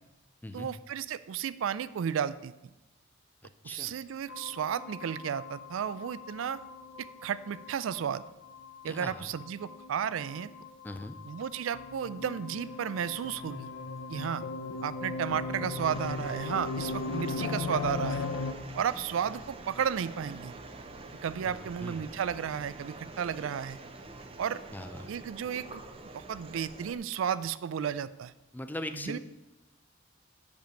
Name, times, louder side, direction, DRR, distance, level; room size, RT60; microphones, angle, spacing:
voice 1, 0.5-2.5 3.6-6.6 7.0-8.2 8.8-10.5 11.3-13.7 14.1-14.4 14.8-18.3 18.7-20.5 21.2-23.8 24.4-24.6 25.1-25.8 26.1-28.3 28.9-29.2, right 8 dB, 90° right, 16 dB, 0.4 m, -33 dB
voice 2, 3.6-4.0 8.9-9.3 10.8-11.2 21.4-22.0 24.7-25.1 28.5-29.2, left 1 dB, 10° left, 9 dB, 0.4 m, -40 dB
sound 1, 4.3-18.5, left 4 dB, 80° left, 0.6 m, -39 dB
sound 2, 15.8-27.0, right 2 dB, 30° right, 0.6 m, -46 dB
7.0 x 5.2 x 6.3 m, 1.0 s
head